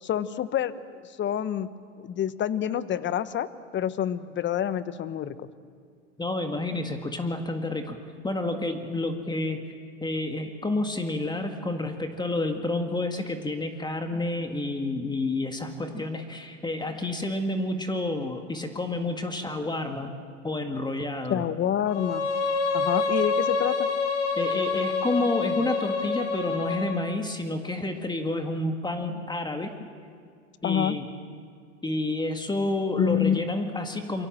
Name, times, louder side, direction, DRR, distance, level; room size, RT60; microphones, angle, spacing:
voice 1, 0.0-1.7 2.0-3.5 3.7-5.5 21.3-22.3 22.7-23.9 30.6-31.0 33.0-33.4, left 10 dB, 30° left, 14 dB, 1.1 m, -27 dB
voice 2, 6.2-8.0 8.2-9.6 10.0-20.1 20.4-21.4 24.4-29.9 30.6-31.1 31.8-34.3, left 2 dB, 10° left, 5 dB, 1.9 m, -29 dB
Bowed string instrument, 21.9-27.0, left 4 dB, 65° left, 4.3 m, -27 dB
27.5 x 23.5 x 7.5 m, 2.1 s
hypercardioid pair, 90°, 37 cm